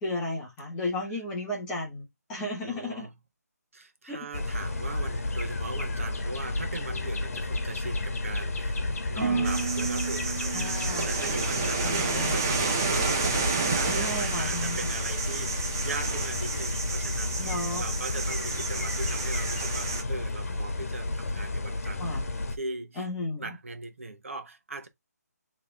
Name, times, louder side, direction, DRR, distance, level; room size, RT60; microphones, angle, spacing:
voice 1, 0.0-3.1 4.1-4.2 9.2-9.5 10.5-11.1 11.8-12.3 13.8-14.8 17.4-17.8 22.0-22.2 23.0-23.5, left 1 dB, 5° left, 0.9 m, -33 dB
voice 2, 2.6-3.2 3.7-8.8 9.0-13.4 13.7-22.0 22.5-23.1 23.4-24.9, right 3 dB, 50° right, 1.3 m, -40 dB
sound 1, 4.3-22.6, left 2 dB, 55° left, 1.3 m, -32 dB
Harp, 9.2-13.3 13.6-14.2 14.7-15.0, right 5 dB, 70° right, 0.6 m, -35 dB
sound 2, 9.4-20.0, right 4 dB, 10° right, 0.5 m, -31 dB
8.2 x 3.4 x 3.4 m
hypercardioid pair, 175°, 9 cm